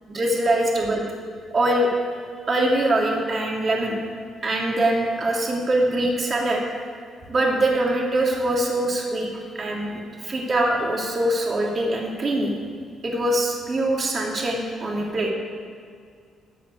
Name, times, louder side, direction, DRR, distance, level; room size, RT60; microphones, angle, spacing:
voice 1, 0.1-1.0 1.5-1.9 2.5-4.0 4.4-6.6 7.3-9.3 9.5-12.5 13.0-15.3, right 1 dB, 40° right, -1 dB, 2.8 m, -23 dB
14.0 x 5.9 x 9.7 m, 2.2 s
cardioid pair, 90°, 0 cm